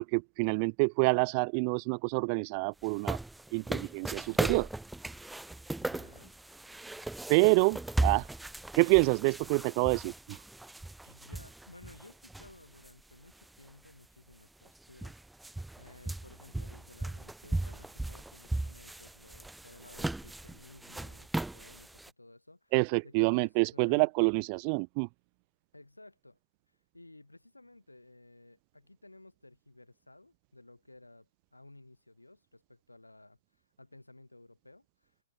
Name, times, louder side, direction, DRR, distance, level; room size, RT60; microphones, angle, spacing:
voice 1, 0.0-3.2 3.5-4.7 7.3-8.3 8.7-10.4 22.7-25.1, right 40 dB or more, 35° right, 0.3 m, -27 dB
sound 1, 2.8-12.9 13.3-13.4 14.3-14.4 14.7-22.1, right 2 dB, 5° right, 0.7 m, -37 dB
voice 2, 5.8-6.3 11.1-15.2 15.8-22.7 23.0-24.1 25.7-26.4 26.9-33.4 33.8-35.1, left 2 dB, 85° left, 6.7 m, -55 dB
figure-of-eight pair, 115°, 0 cm